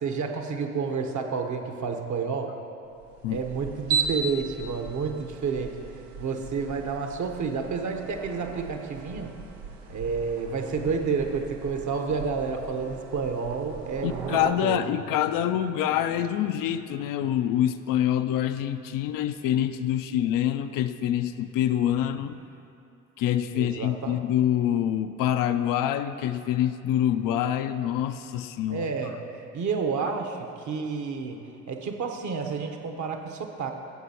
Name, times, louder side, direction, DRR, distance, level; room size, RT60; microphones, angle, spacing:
voice 1, 0.0-2.6 3.3-5.8 6.2-9.4 9.9-14.8 23.5-24.2 28.7-29.2 29.5-33.7, right 5 dB, 50° right, 5 dB, 1.0 m, -30 dB
sound 1, 2.9-14.5, right 5 dB, 90° right, 0.6 m, -37 dB
voice 2, 14.0-22.4 23.2-28.9, left 11 dB, 60° left, 9 dB, 0.5 m, -26 dB
14.0 x 7.5 x 2.9 m, 2.6 s
hypercardioid pair, 50°, 37 cm